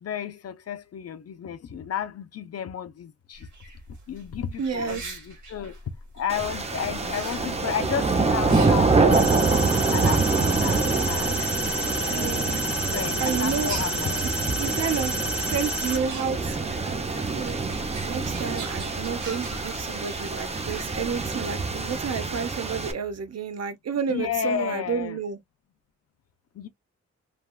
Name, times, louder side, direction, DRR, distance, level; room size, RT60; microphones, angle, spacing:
voice 1, 0.0-3.5 4.1-5.7 6.2-9.4 9.9-11.4 11.9-12.4 12.9-14.2 24.1-25.2 26.6-26.7, left 8 dB, 55° left, 0.5 m, -32 dB
sound 1, 3.3-22.1, right 1 dB, 75° right, 1.3 m, -43 dB
voice 2, 4.6-5.1 12.1-12.6 13.2-13.7 14.5-15.2 15.5-17.0 17.3-17.6 18.0-25.4, right 6 dB, 60° right, 0.8 m, -30 dB
sound 2, 6.3-22.9, right 4 dB, 20° right, 0.6 m, -26 dB
sound 3, 9.1-16.0, equal, 5° right, 1.2 m, -30 dB
3.4 x 2.3 x 2.2 m
wide cardioid pair, 105°, 29 cm